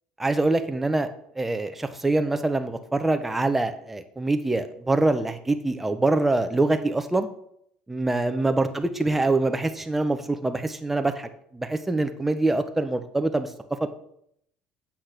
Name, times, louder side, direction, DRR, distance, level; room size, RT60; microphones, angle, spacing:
voice 1, 0.2-1.1 1.4-7.3 7.9-13.5, right 2 dB, 10° right, 7 dB, 0.8 m, -24 dB
8.7 x 6.7 x 5.9 m, 0.71 s
cardioid pair, 155°, 2 cm